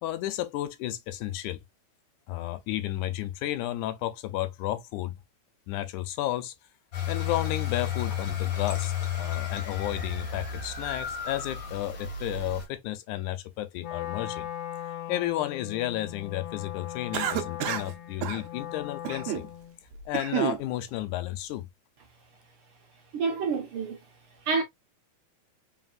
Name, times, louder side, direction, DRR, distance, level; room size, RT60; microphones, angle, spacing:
voice 1, 0.0-1.6 2.3-5.2 5.7-6.5 7.1-14.5 15.1-19.5 20.1-21.7, left 14 dB, 90° left, 2.2 m, -32 dB
sound 1, 6.9-12.7, left 8 dB, 50° left, 1.6 m, -32 dB
Wind instrument woodwind instrument, 13.8-19.8, left 12 dB, 70° left, 1.7 m, -39 dB
Cough, 17.1-17.9 18.2-18.4 19.0-19.5 19.9-20.6, right 12 dB, 80° right, 2.0 m, -30 dB
voice 2, 23.1-24.0 24.4-24.6, right 4 dB, 60° right, 1.6 m, -28 dB
4.1 x 4.0 x 2.5 m
omnidirectional pair, 3.4 m